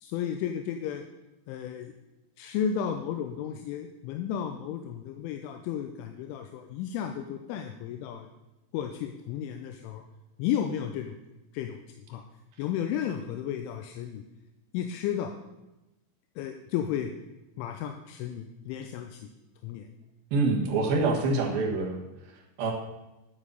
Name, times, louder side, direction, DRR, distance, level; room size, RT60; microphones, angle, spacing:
voice 1, 0.0-1.0 1.5-1.9 2.4-8.3 8.7-10.0 10.4-11.1 11.5-11.8 12.1-12.2 12.6-14.2 14.7-15.4 16.4-17.1 17.6-19.2 19.6-19.9, left 9 dB, 80° left, 5 dB, 3.0 m, -33 dB
voice 2, 20.3-22.0 22.6-22.7, right 3 dB, 65° right, 1 dB, 2.6 m, -25 dB
11.0 x 7.6 x 6.9 m, 0.98 s
omnidirectional pair, 6.0 m